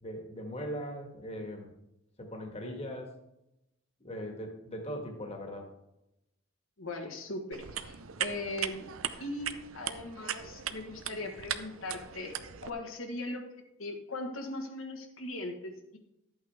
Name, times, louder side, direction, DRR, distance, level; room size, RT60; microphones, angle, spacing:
voice 1, 0.0-1.7 2.2-3.1 4.0-5.7, equal, 30° left, 3 dB, 1.5 m, -40 dB
voice 2, 6.8-8.9 9.2-12.4 12.6-13.4 13.8-16.0, left 2 dB, 75° left, 3 dB, 1.4 m, -39 dB
sound 1, 7.5-12.7, right 9 dB, 80° right, 0.7 m, -39 dB
12.5 x 8.7 x 3.5 m, 0.88 s
head